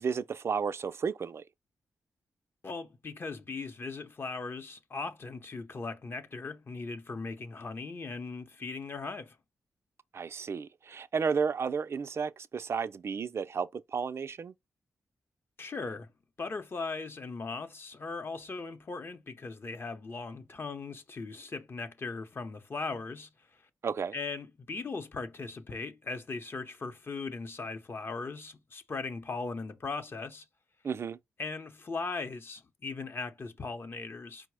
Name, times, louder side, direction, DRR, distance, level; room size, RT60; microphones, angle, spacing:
voice 1, 0.0-1.4 10.1-14.5 23.8-24.1 30.8-31.2, right 6 dB, 50° right, 0.4 m, -32 dB
voice 2, 2.6-9.4 15.6-16.1 16.4-23.6 24.1-30.4 31.4-34.5, left 4 dB, 45° left, 0.7 m, -38 dB
4.6 x 2.1 x 4.6 m
cardioid pair, 75°, 5 cm